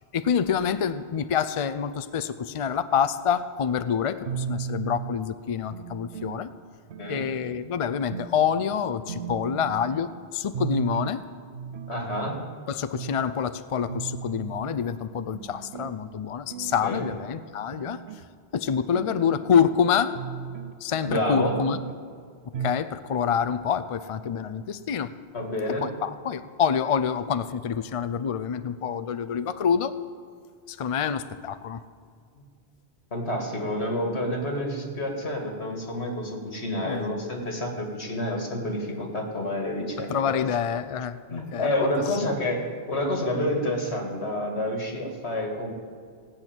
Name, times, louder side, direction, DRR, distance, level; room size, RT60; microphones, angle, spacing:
voice 1, 0.1-6.5 7.1-11.2 12.7-18.0 18.5-20.1 20.8-21.8 22.6-25.1 25.8-29.9 30.7-31.8 36.9-37.1 40.1-41.9, left 7 dB, 45° left, 12 dB, 0.4 m, -27 dB
sound 1, 4.2-5.2 5.7-6.5 6.9-7.5 8.1-8.4 8.7-8.8 9.1-10.1 10.5-11.2 11.5-12.5 12.9-13.1 13.5-13.6 13.9-14.8 15.3-16.0 16.5-17.2 17.7-18.2 18.7-19.7 20.1-20.7 21.3-22.0 22.5-22.9 23.1-23.2 23.5-23.6, right 8 dB, 70° right, 0.9 m, -36 dB
voice 2, 11.9-12.4 16.8-17.0 21.0-21.6 25.3-25.8 32.4-32.5 33.1-40.1 41.3-45.7, left 1 dB, 75° left, 1 dB, 2.3 m, -29 dB
17.5 x 6.3 x 8.9 m, 2.1 s
omnidirectional pair, 1.1 m